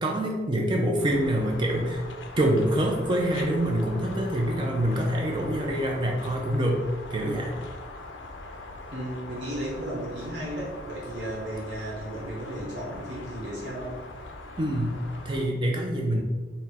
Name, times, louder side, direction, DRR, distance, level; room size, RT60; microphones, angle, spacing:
voice 1, 0.0-2.0 2.4-7.5 14.6-16.2, right 1 dB, 25° right, 0 dB, 0.4 m, -26 dB
sound 1, 1.0-15.5, left 2 dB, 85° left, 0.5 m, -42 dB
voice 2, 8.9-14.0, right 1 dB, 70° right, -6 dB, 1.0 m, -34 dB
4.1 x 2.1 x 4.1 m, 1.3 s
head